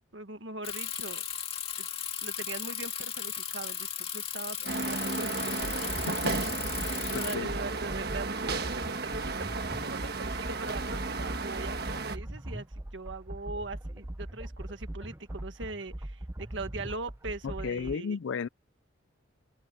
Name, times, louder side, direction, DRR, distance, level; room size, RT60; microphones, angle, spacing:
voice 1, 0.1-1.3 1.8-1.9 2.2-5.6 6.9-18.2, right 2 dB, 65° right, 1.6 m, -41 dB
Bicycle, 0.6-7.3, left 9 dB, 30° left, 2.2 m, -36 dB
sound 1, 4.6-12.2, right 3 dB, 50° right, 1.4 m, -34 dB
sound 2, 5.6-17.9, right 1 dB, 15° right, 0.6 m, -40 dB
voice 2, 6.1-6.4 7.1-7.5 17.4-18.5, left 5 dB, 70° left, 0.4 m, -34 dB
head